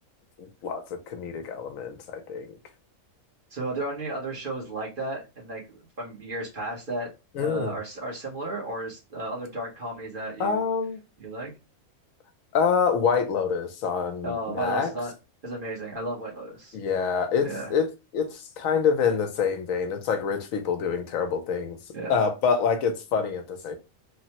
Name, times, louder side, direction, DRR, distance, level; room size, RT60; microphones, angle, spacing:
voice 1, 0.4-2.6 7.4-7.8 10.4-11.0 12.5-14.9 16.7-17.9 18.1-21.8 22.1-23.7, left 6 dB, 80° left, 1.0 m, -26 dB
voice 2, 3.5-7.1 7.4-10.7 11.2-11.5 14.2-15.1 15.4-16.8 17.4-17.7 21.9-22.2, right 2 dB, 45° right, 1.1 m, -34 dB
3.3 x 2.0 x 2.8 m
omnidirectional pair, 1.4 m